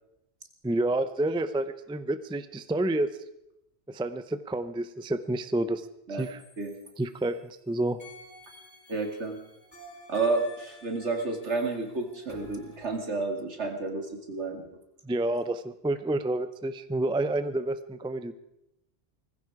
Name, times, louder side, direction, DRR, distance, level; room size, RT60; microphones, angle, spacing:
voice 1, 0.6-3.1 3.9-6.4 7.0-8.0 15.0-18.3, right 1 dB, 5° right, 12 dB, 0.4 m, -29 dB
sound 1, 6.2-7.6 8.0-13.0, left 1 dB, 40° left, 4.4 m, -51 dB
voice 2, 8.9-9.4 10.1-14.7, right 3 dB, 75° right, 4 dB, 2.6 m, -30 dB
19.5 x 15.5 x 4.8 m, 0.85 s
omnidirectional pair, 1.2 m